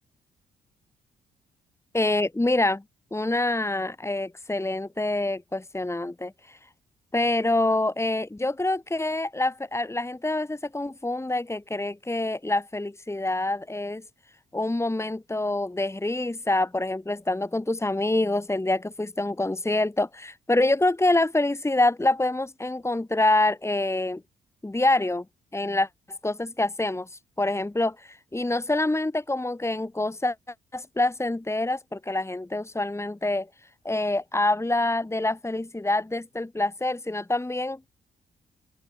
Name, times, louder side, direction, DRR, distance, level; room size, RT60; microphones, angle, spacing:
voice 1, 1.9-2.8 3.1-6.6 7.1-14.0 14.5-24.2 24.6-25.2 25.5-30.3 30.7-33.5 33.8-37.8, left 2 dB, 15° left, 3.1 m, -26 dB
open air
figure-of-eight pair, 40°, 20 cm